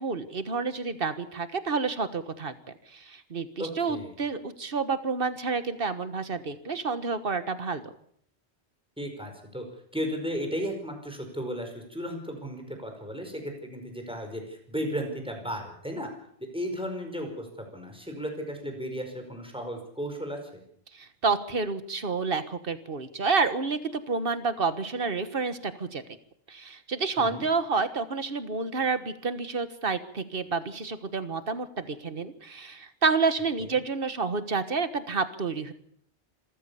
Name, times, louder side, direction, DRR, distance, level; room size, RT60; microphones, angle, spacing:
voice 1, 0.0-2.5 2.9-7.9 20.9-26.0 26.5-35.7, right 4 dB, 55° right, 11 dB, 1.6 m, -29 dB
voice 2, 3.6-4.2 9.0-9.6 9.9-16.1 16.5-20.4 27.2-27.4 33.6-33.7, equal, 5° right, 3 dB, 5.1 m, -35 dB
26.5 x 14.5 x 7.0 m, 0.68 s
omnidirectional pair, 1.1 m